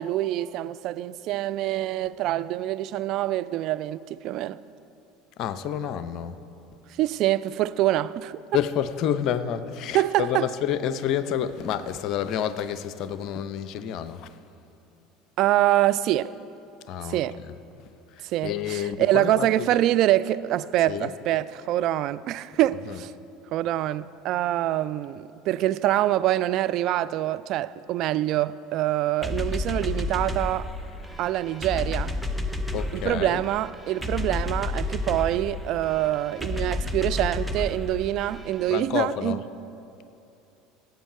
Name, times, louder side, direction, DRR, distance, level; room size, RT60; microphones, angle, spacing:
voice 1, 0.0-4.6 7.0-8.4 9.9-10.5 15.4-16.3 17.1-17.4 18.2-23.1 23.5-30.7 31.2-32.1 32.9-39.4, right 14 dB, 50° right, 0.3 m, -25 dB
voice 2, 5.4-6.4 8.5-14.3 16.9-17.6 18.4-19.8 20.9-21.1 22.9-23.0 32.7-33.4 38.7-39.4, left 9 dB, 50° left, 0.6 m, -29 dB
sound 1, 29.2-38.8, left 2 dB, 5° right, 0.9 m, -31 dB
17.0 x 8.1 x 4.9 m
figure-of-eight pair, 65°, 0 cm